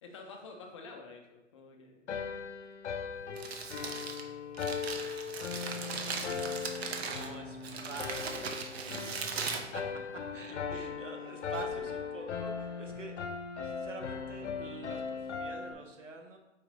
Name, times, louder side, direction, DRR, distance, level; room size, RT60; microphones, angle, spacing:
voice 1, 0.0-2.1 10.5-10.6, left 3 dB, 25° left, 2 dB, 0.5 m, -49 dB
sound 1, 2.1-15.7, left 6 dB, 65° left, 0.7 m, -39 dB
Crumpling crinkling, 3.1-10.5, right 5 dB, 60° right, 0.7 m, -39 dB
sound 2, 6.6-12.9, left 1 dB, ahead, 0.9 m, -55 dB
voice 2, 7.0-7.6 7.8-13.2 13.6-16.4, right 3 dB, 85° right, 3 dB, 1.1 m, -46 dB
4.8 x 3.0 x 3.6 m, 0.97 s
hypercardioid pair, 135°, 36 cm